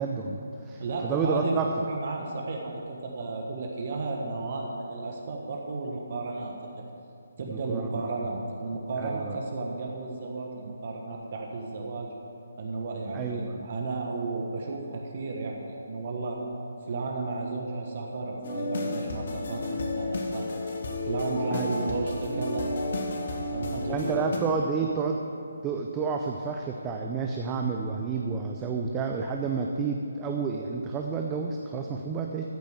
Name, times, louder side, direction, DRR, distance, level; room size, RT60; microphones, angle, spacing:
voice 1, 0.0-1.7 7.4-8.1 9.0-9.4 13.1-13.5 21.5-21.9 23.9-25.2 25.6-32.4, right 5 dB, 15° right, 2 dB, 0.6 m, -30 dB
voice 2, 0.8-1.6 1.9-6.8 7.4-12.1 12.6-16.4 16.9-20.5 21.1-22.7 23.4-24.2, right 3 dB, 45° right, 0 dB, 1.4 m, -33 dB
sound 1, 18.4-24.4, left 2 dB, 55° left, 1.9 m, -31 dB
14.0 x 5.2 x 8.0 m, 2.6 s
figure-of-eight pair, 155°, 0 cm